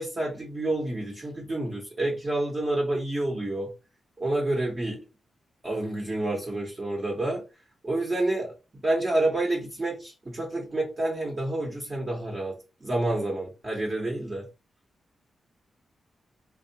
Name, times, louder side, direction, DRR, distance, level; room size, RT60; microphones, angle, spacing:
voice 1, 0.0-3.7 4.2-5.0 5.6-7.4 7.8-8.5 8.8-12.5 12.8-14.4, right 2 dB, 35° right, -2 dB, 1.1 m, -28 dB
3.5 x 2.4 x 2.8 m, 0.29 s
cardioid pair, 80°, 0 cm